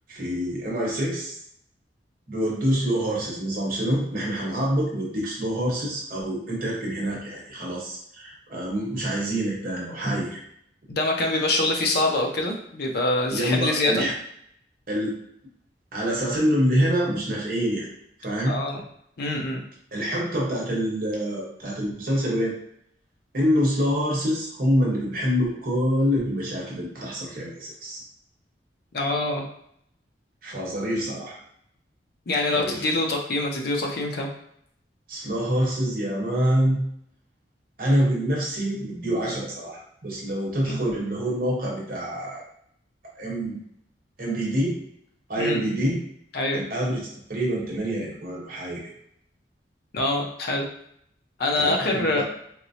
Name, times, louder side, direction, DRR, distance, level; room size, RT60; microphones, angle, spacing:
voice 1, 0.1-1.4 2.3-10.4 13.3-14.1 14.9-15.2 15.9-17.9 18.2-18.6 19.9-22.5 23.3-28.0 30.4-31.4 32.5-32.9 35.1-36.8 37.8-42.4 43.2-43.6 44.2-44.8 45.3-46.0 46.5-48.8 51.5-52.2, equal, 55° right, -3 dB, 1.0 m, -26 dB
voice 2, 10.9-14.1 18.5-18.8 19.2-19.6 28.9-29.5 32.3-34.3 40.6-40.9 45.4-45.8 46.3-46.6 49.9-50.7 51.4-52.2, left 2 dB, 60° left, 1 dB, 0.5 m, -25 dB
4.3 x 2.0 x 2.7 m, 0.70 s
head